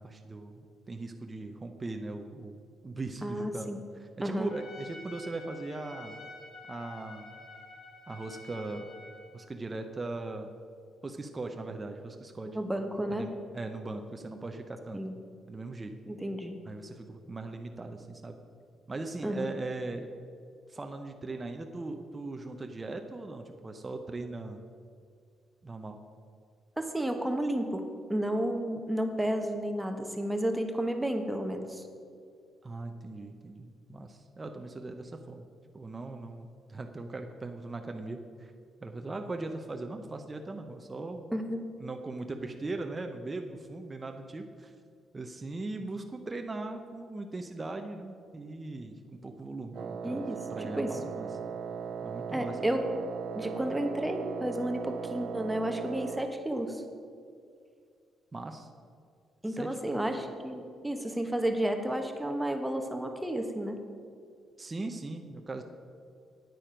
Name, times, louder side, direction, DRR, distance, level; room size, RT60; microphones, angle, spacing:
voice 1, 0.0-2.6 2.8-6.2 6.7-7.4 8.1-8.9 9.3-10.5 11.0-12.5 13.1-15.0 15.5-15.9 16.7-18.4 18.9-20.1 20.7-24.6 25.6-26.0 32.6-35.4 35.7-38.5 38.8-41.2 41.8-44.7 45.1-51.3 52.0-52.6 58.3-58.7 59.5-60.0 64.6-65.6, right 2 dB, 25° right, 5 dB, 0.7 m, -39 dB
voice 2, 3.2-3.8 4.2-4.5 12.5-13.3 14.9-15.1 16.1-16.5 19.2-19.5 26.8-31.8 41.3-41.6 50.0-51.0 52.3-52.9 53.3-56.8 59.4-63.8, right 1 dB, 10° right, 5 dB, 1.1 m, -32 dB
Trumpet, 4.5-9.4, left 3 dB, 60° left, 1.8 m, -49 dB
Wind instrument woodwind instrument, 49.7-56.4, right 7 dB, 60° right, 0.5 m, -38 dB
9.3 x 9.0 x 5.1 m, 2.3 s
cardioid pair, 90°, 0 cm